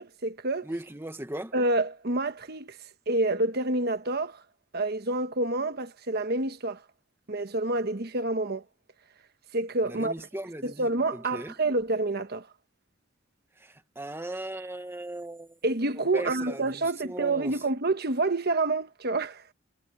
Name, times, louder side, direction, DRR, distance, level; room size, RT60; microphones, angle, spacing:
voice 1, 0.0-0.7 1.5-2.8 3.1-4.4 4.7-6.8 7.3-8.6 9.5-10.1 10.6-12.5 15.6-19.4, right 2 dB, 50° right, 1.2 m, -28 dB
voice 2, 0.6-1.5 9.8-11.5 13.6-15.6 16.1-17.5, right 1 dB, 10° right, 1.3 m, -38 dB
head